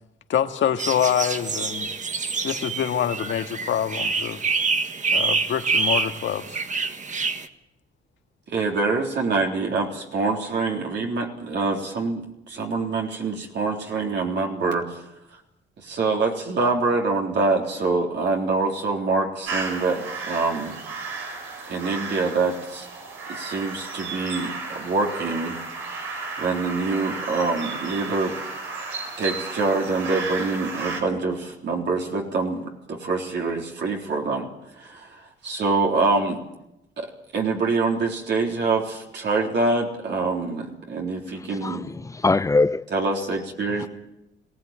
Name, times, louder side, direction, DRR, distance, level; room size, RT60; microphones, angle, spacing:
voice 1, 0.3-1.9 2.4-4.4 5.1-6.6, left 9 dB, 70° left, 1.8 m, -25 dB
sound 1, 0.8-7.5, right 4 dB, 40° right, 1.6 m, -26 dB
voice 2, 8.5-15.0 15.8-20.8 21.2-21.3 21.7-22.9 23.3-25.6 26.4-28.4 29.2-34.5 34.8-36.4 37.0-41.9 42.9-43.9, right 3 dB, 60° right, 3.6 m, -25 dB
sound 2, 19.5-31.0, right 4 dB, 85° right, 5.3 m, -33 dB
voice 3, 41.5-42.8 43.8-43.9, left 3 dB, 15° left, 0.7 m, -22 dB
22.5 x 17.0 x 9.0 m
cardioid pair, 90°, 20 cm